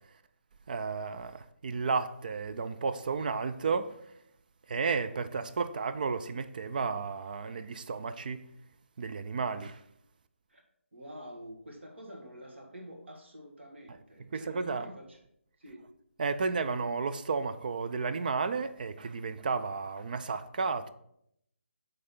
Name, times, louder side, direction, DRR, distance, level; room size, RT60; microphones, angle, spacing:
voice 1, 0.7-4.0 4.7-8.4 9.0-9.8 14.3-14.9 16.2-20.9, right 4 dB, 40° right, 0.3 m, -32 dB
voice 2, 10.9-15.2 15.6-15.9, equal, 60° right, 1.7 m, -47 dB
6.5 x 3.9 x 5.4 m
figure-of-eight pair, 150°, 7 cm